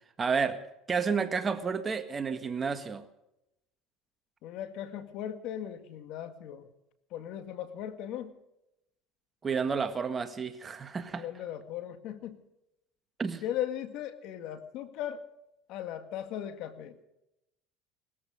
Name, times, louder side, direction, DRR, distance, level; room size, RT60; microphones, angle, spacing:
voice 1, 0.2-0.6 0.9-3.0 9.4-11.2 13.2-13.4, right 5 dB, 25° right, 1.6 m, -30 dB
voice 2, 4.4-6.7 7.1-8.4 11.2-12.4 13.4-15.2 15.7-17.0, left 10 dB, 65° left, 1.9 m, -38 dB
19.5 x 14.0 x 5.1 m
supercardioid pair, 105°, 0 cm